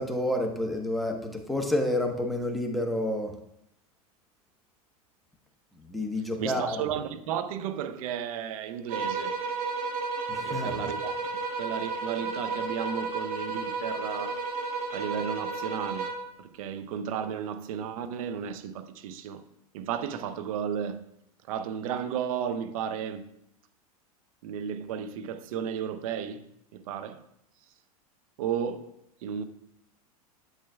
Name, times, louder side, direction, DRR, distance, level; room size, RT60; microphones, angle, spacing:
voice 1, 0.0-3.3 5.9-6.8 10.3-10.7, left 1 dB, ahead, 1.1 m, -29 dB
voice 2, 6.4-9.3 10.4-14.4 14.9-16.1 16.4-19.4 19.7-21.0 21.5-23.2 24.4-26.4 26.7-27.2 28.4-28.9 29.2-29.4, right 8 dB, 65° right, 0.7 m, -33 dB
sound 1, 8.9-16.3, right 4 dB, 45° right, 1.2 m, -32 dB
8.8 x 7.4 x 2.4 m
hypercardioid pair, 95°, 20 cm